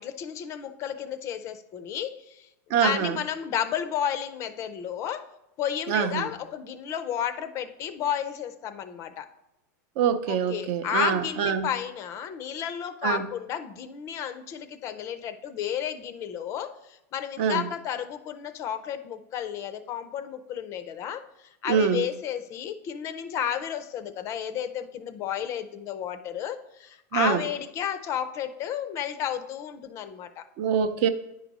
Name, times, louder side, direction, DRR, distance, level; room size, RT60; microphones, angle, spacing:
voice 1, 0.0-5.3 5.6-9.3 10.3-21.2 21.6-30.4, left 9 dB, 30° left, 11 dB, 0.5 m, -32 dB
voice 2, 2.7-3.2 5.9-6.3 10.0-11.7 13.0-13.3 17.4-17.7 21.7-22.0 27.1-27.4 30.6-31.1, right 7 dB, 50° right, 10 dB, 0.5 m, -24 dB
10.0 x 4.7 x 4.0 m, 0.89 s
supercardioid pair, 160°, 10 cm